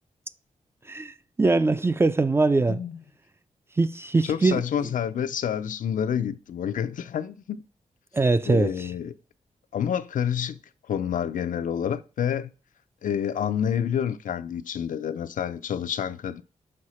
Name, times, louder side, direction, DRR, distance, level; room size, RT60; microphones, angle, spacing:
voice 1, 0.9-2.8 3.8-4.6 8.1-8.7, right 3 dB, 20° right, 0.3 m, -22 dB
voice 2, 2.7-3.0 4.2-7.6 8.4-9.1 9.7-10.6 10.9-12.5 13.0-16.4, left 8 dB, 80° left, 0.5 m, -28 dB
6.5 x 4.7 x 4.3 m
wide cardioid pair, 160°, 13 cm